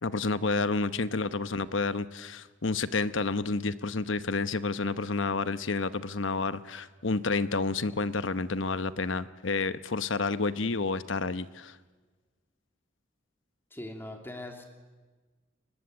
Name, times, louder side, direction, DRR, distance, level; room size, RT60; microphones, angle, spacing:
voice 1, 0.0-11.8, left 3 dB, 75° left, 13 dB, 1.0 m, -30 dB
voice 2, 13.7-14.6, left 1 dB, 10° left, 3 dB, 3.0 m, -41 dB
30.0 x 23.5 x 8.2 m, 1.3 s
head